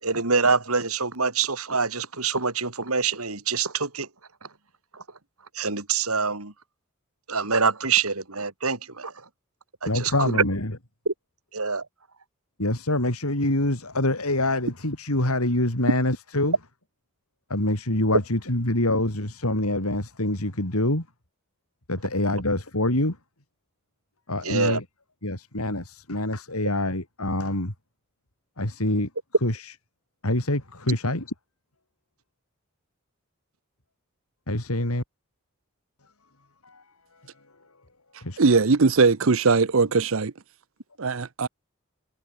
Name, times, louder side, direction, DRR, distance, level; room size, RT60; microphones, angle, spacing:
voice 1, 0.0-4.1 4.9-5.0 5.5-6.5 7.3-9.3 9.8-10.4 11.1-11.2 11.5-11.9 24.4-24.8, right 5 dB, 85° right, 4.1 m, -25 dB
voice 2, 9.9-10.7 12.6-16.5 17.5-21.0 21.9-23.2 24.3-24.8 25.2-27.7 28.6-29.1 29.4-29.6 30.2-31.2 34.5-35.0 36.6-36.8 38.2-38.4, left 1 dB, 85° left, 4.6 m, -25 dB
voice 3, 38.4-40.3 41.0-41.5, right 4 dB, 70° right, 0.7 m, -20 dB
head